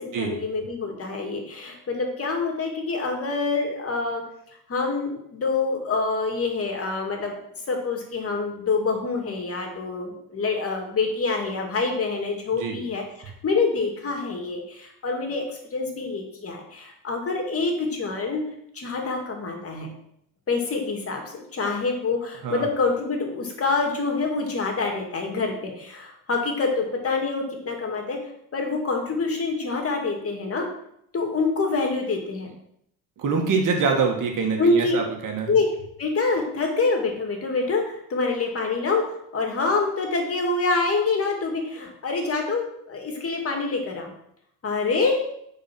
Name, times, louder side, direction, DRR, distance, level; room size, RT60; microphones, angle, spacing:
voice 1, 0.0-4.2 4.7-7.4 7.7-18.4 18.7-19.9 20.5-28.2 28.5-30.6 31.1-32.5 34.6-35.0 35.5-35.7 36.0-44.1 44.6-45.2, left 3 dB, 40° left, 2 dB, 2.5 m, -26 dB
voice 2, 33.2-35.5, right 5 dB, 60° right, 2 dB, 2.2 m, -24 dB
8.7 x 4.9 x 6.1 m, 0.74 s
cardioid pair, 90°, 36 cm